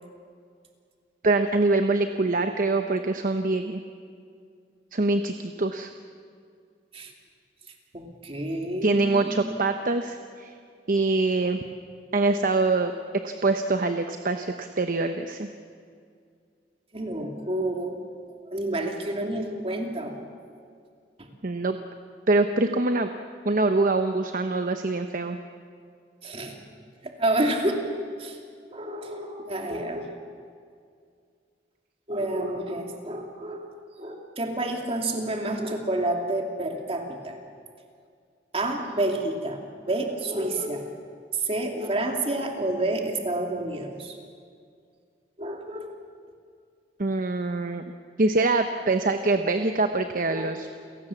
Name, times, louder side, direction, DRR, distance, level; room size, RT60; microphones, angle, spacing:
voice 1, 1.2-3.8 4.9-5.9 8.8-10.5 10.9-11.6 12.1-12.9 13.2-15.5 21.4-21.8 22.3-23.1 23.4-25.4 47.0-47.8 48.2-50.7, right 3 dB, 50° right, 7 dB, 0.9 m, -24 dB
voice 2, 7.9-9.5 16.9-18.0 18.5-20.3 21.2-21.3 26.2-26.6 27.0-27.9 28.2-28.4 28.7-30.2 32.1-33.7 34.0-37.4 38.5-39.6 39.9-40.9 41.3-44.2 45.4-45.9 50.3-50.5, right 1 dB, 35° right, 2 dB, 2.7 m, -29 dB
29.0 x 18.0 x 7.2 m, 2.2 s
head